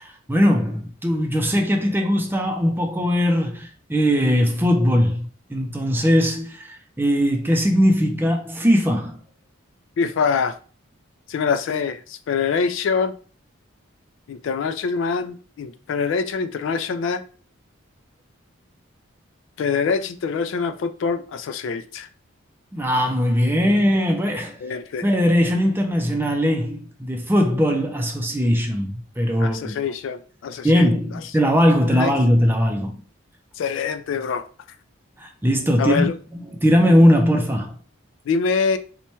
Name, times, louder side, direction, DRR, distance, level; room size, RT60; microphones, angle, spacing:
voice 1, 0.0-9.2 22.7-24.6 25.0-29.7 30.6-33.0 35.2-37.8, equal, 10° right, 0.4 m, -20 dB
voice 2, 10.0-10.6 11.3-13.1 14.3-17.2 19.6-22.1 24.6-25.1 29.4-30.9 32.0-32.1 33.6-34.4 35.8-36.1 38.3-38.8, left 5 dB, 65° left, 0.3 m, -24 dB
4.2 x 2.2 x 2.9 m
head